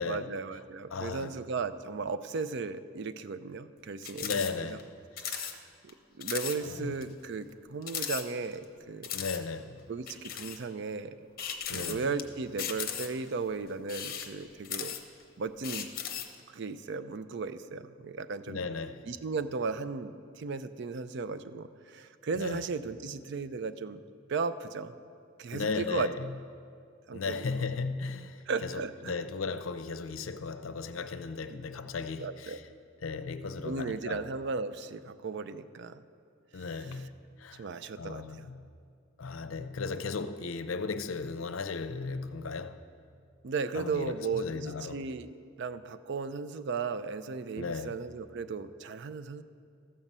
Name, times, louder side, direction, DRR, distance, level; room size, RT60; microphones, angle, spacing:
voice 1, 0.0-4.8 5.2-9.1 9.9-11.3 11.7-15.0 15.4-15.9 16.5-18.6 19.1-24.0 24.3-24.9 25.4-26.1 27.1-27.4 28.5-29.2 31.5-31.6 32.2-32.6 33.6-36.0 36.9-37.0 37.6-38.5 43.4-45.3 45.6-49.4, right 4 dB, 60° right, 0.4 m, -36 dB
voice 2, 0.9-1.4 4.2-4.9 6.6-6.9 9.1-9.8 11.7-12.1 18.5-19.1 22.4-22.6 25.5-26.3 27.1-32.6 33.0-34.2 36.5-37.1 37.4-37.7 38.0-38.6 39.2-42.8 43.7-45.0 47.6-47.9, left 4 dB, 85° left, 0.5 m, -36 dB
sound 1, 4.0-4.5 4.8-4.9 5.2-5.6 5.9-6.0 6.2-6.6 7.0-7.1 7.8-8.6 9.0-9.4 10.1-10.6 11.4-12.2 12.6-13.3 13.8-15.2 15.6-16.4, left 9 dB, 45° left, 0.7 m, -36 dB
13.5 x 5.4 x 7.3 m
head